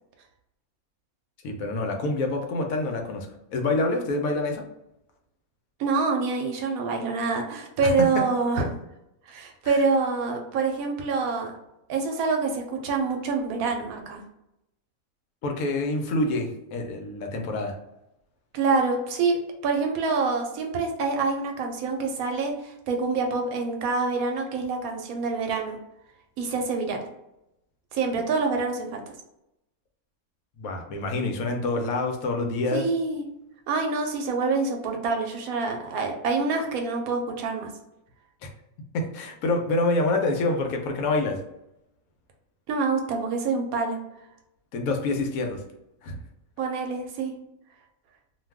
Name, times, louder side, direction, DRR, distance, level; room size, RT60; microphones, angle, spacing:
voice 1, 1.4-4.6 7.8-8.2 9.6-9.8 15.4-17.7 30.6-32.8 38.4-38.5 38.9-41.4 44.7-45.6 46.0-46.2, left 2 dB, 75° left, 3 dB, 1.0 m, -27 dB
voice 2, 5.8-8.8 9.3-11.5 11.9-14.2 18.5-25.8 26.4-27.0 27.9-29.0 32.7-33.3 33.7-37.7 42.7-44.0 46.6-47.4, right 4 dB, 80° right, 3 dB, 1.1 m, -26 dB
2.6 x 2.3 x 3.4 m, 0.86 s
omnidirectional pair, 1.5 m